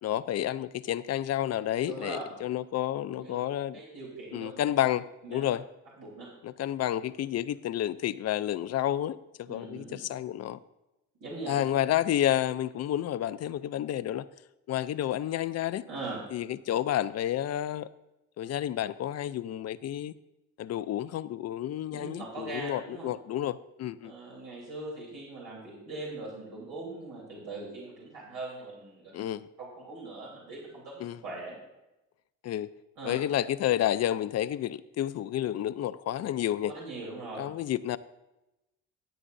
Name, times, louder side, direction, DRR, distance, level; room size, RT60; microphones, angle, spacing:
voice 1, 0.0-3.8 4.3-5.0 5.3-5.6 6.4-10.6 11.5-14.2 14.7-15.8 16.3-17.9 18.4-20.1 20.6-24.1 29.1-29.5 31.0-31.2 32.4-32.7 33.0-36.7 37.4-38.0, left 12 dB, 50° left, 0.5 m, -30 dB
voice 2, 1.9-2.4 3.2-3.4 3.7-4.6 5.2-5.4 6.0-6.3 9.5-10.0 11.2-11.5 15.9-16.2 21.9-23.1 24.0-29.2 29.6-31.6 32.9-33.2 36.6-37.4, right 2 dB, 85° right, 3.4 m, -41 dB
13.5 x 8.6 x 2.6 m
supercardioid pair, 80°, 33 cm